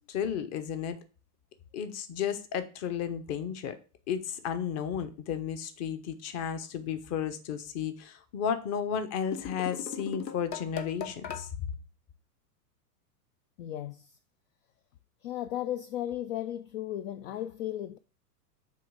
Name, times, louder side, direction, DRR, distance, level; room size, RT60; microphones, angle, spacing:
voice 1, 0.1-1.0 1.7-3.8 4.1-11.5, left 8 dB, 35° left, 0.9 m, -33 dB
sound 1, 9.3-11.5, left 8 dB, 90° left, 1.0 m, -38 dB
voice 2, 13.6-14.2 15.2-18.0, left 12 dB, 55° left, 0.5 m, -35 dB
7.6 x 3.1 x 4.9 m
hypercardioid pair, 105°, 48 cm